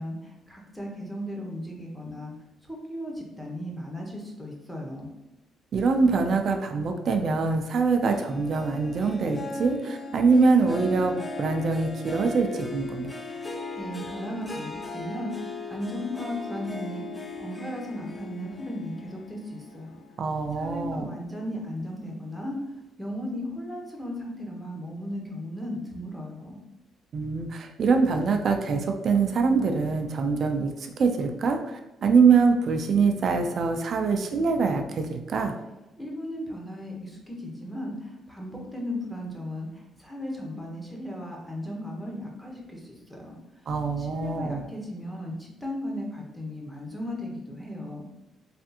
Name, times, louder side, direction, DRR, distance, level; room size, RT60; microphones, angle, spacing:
voice 1, 0.0-2.3 2.6-5.1 13.3-20.0 20.6-22.6 23.0-26.6 36.0-43.4 44.0-48.1, left 1 dB, 5° left, -1 dB, 0.9 m, -36 dB
voice 2, 5.7-13.1 20.2-21.1 27.1-35.5 43.7-44.7, right 4 dB, 55° right, 4 dB, 0.4 m, -24 dB
Harp, 8.0-20.8 21.2-21.6 22.1-22.2, left 2 dB, 20° left, 0.4 m, -38 dB
3.4 x 2.4 x 2.7 m, 1.0 s
cardioid pair, 90°, 0 cm